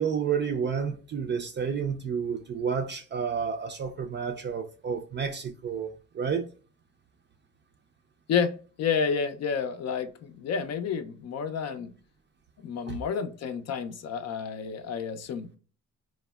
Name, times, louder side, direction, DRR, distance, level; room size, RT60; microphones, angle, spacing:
voice 1, 0.0-6.5 12.9-13.0, right 6 dB, 35° right, 0.4 m, -30 dB
voice 2, 8.3-11.9 12.6-15.5, left 6 dB, 60° left, 0.5 m, -30 dB
3.4 x 2.0 x 2.2 m
cardioid pair, 90°, 30 cm